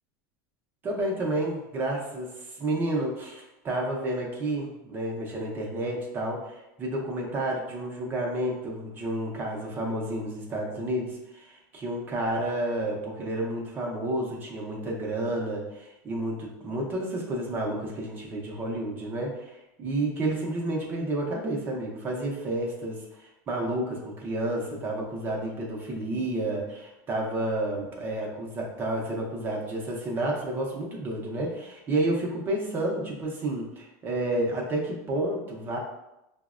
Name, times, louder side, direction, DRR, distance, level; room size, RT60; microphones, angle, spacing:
voice 1, 0.8-35.8, right 1 dB, 25° right, -1 dB, 0.6 m, -30 dB
5.0 x 2.0 x 2.4 m, 0.92 s
supercardioid pair, 155°, 9 cm